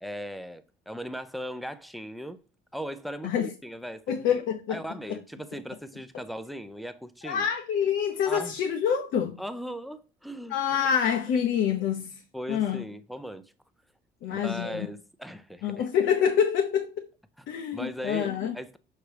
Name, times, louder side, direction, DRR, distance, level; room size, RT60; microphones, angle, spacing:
voice 1, 0.0-2.4 2.7-4.4 4.7-7.5 8.3-8.5 9.4-10.6 12.3-13.5 14.3-15.9 17.7-18.8, equal, ahead, 0.5 m, -38 dB
voice 2, 4.1-4.8 5.1-5.2 7.2-9.4 10.5-12.2 12.5-12.9 14.2-14.9 15.6-17.1 17.5-18.6, left 8 dB, 70° left, 0.7 m, -26 dB
6.6 x 5.7 x 3.3 m
cardioid pair, 130°, 20 cm